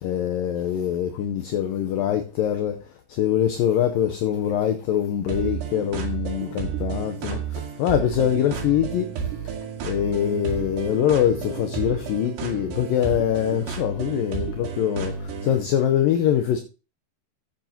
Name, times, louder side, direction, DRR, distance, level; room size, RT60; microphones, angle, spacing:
voice 1, 0.0-2.8 3.1-9.5 9.8-16.6, left 10 dB, 75° left, 2.2 m, -24 dB
sound 1, 5.3-15.6, right 6 dB, 90° right, 4.0 m, -32 dB
15.0 x 9.0 x 2.8 m
omnidirectional pair, 4.6 m